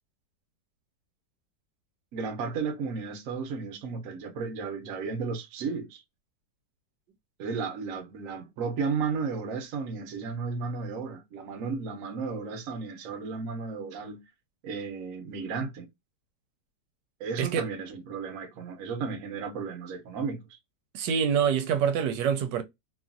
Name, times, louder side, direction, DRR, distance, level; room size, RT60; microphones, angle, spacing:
voice 1, 2.1-6.0 7.4-14.2 14.6-15.9 17.2-20.6, right 5 dB, 60° right, 1.0 m, -34 dB
voice 2, 20.9-22.6, right 7 dB, 80° right, 1.2 m, -25 dB
3.0 x 2.4 x 2.5 m
omnidirectional pair, 1.9 m